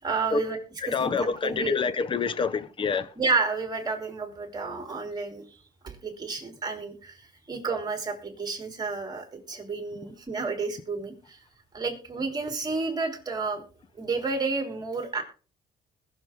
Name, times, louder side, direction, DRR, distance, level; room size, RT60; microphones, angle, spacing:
voice 1, 0.0-0.6 0.8-1.9 3.2-5.6 5.8-11.4 11.7-13.7 14.0-15.2, right 4 dB, 25° right, 3.5 m, -31 dB
voice 2, 0.8-3.1, left 6 dB, 30° left, 0.9 m, -27 dB
21.0 x 7.1 x 3.7 m
cardioid pair, 110°, 17 cm